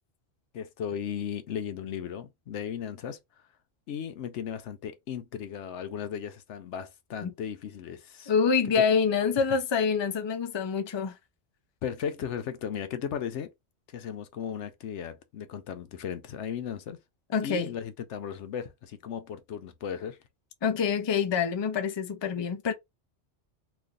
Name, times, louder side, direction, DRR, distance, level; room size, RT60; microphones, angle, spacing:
voice 1, 0.5-3.2 3.9-8.3 8.8-8.9 11.8-13.5 13.9-17.0 17.4-20.2, left 8 dB, 85° left, 1.0 m, -36 dB
voice 2, 8.3-11.1 17.3-17.7 20.6-22.7, left 6 dB, 35° left, 0.4 m, -26 dB
3.1 x 2.5 x 3.7 m
omnidirectional pair, 1.2 m